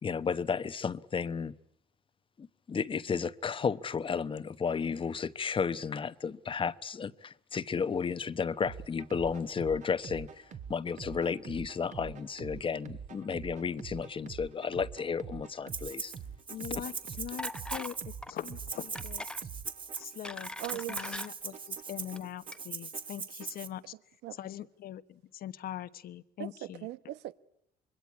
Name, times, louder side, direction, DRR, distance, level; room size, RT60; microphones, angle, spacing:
voice 1, 0.0-1.5 2.4-16.1, left 6 dB, 30° left, 1.0 m, -33 dB
sound 1, 8.6-23.6, right 7 dB, 45° right, 1.8 m, -46 dB
Rattle (instrument), 15.7-16.2 16.5-23.7, right 5 dB, 30° right, 1.9 m, -40 dB
voice 2, 16.5-19.3 20.0-23.9 24.4-26.9, left 12 dB, 60° left, 1.2 m, -42 dB
sound 2, 17.4-18.0 18.2-18.4 19.0-19.4 19.9-21.3 22.0-22.2 22.5-22.6, left 1 dB, 5° left, 1.0 m, -41 dB
voice 3, 20.6-21.2 24.2-24.4 26.4-27.3, right 15 dB, 85° right, 1.2 m, -40 dB
26.0 x 22.0 x 9.6 m
cardioid pair, 110°, 17 cm